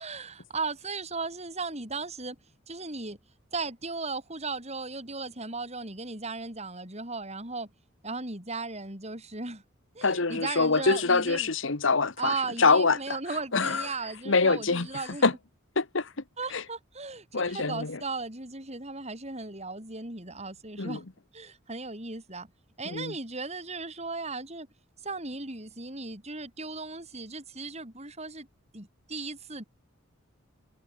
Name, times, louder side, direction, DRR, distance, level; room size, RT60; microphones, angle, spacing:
voice 1, 0.0-2.4 2.7-3.2 3.5-7.7 8.0-9.6 9.9-11.5 12.2-15.2 16.4-21.1 21.3-22.5 22.8-24.7 25.0-28.5 28.7-29.6, right 3 dB, 30° right, 7.8 m, -36 dB
voice 2, 10.0-13.2 13.5-13.9 14.2-14.9 15.2-15.3 15.7-16.1 16.5-16.6 17.3-18.0 20.8-21.0 22.8-23.1, left 4 dB, 65° left, 1.3 m, -25 dB
head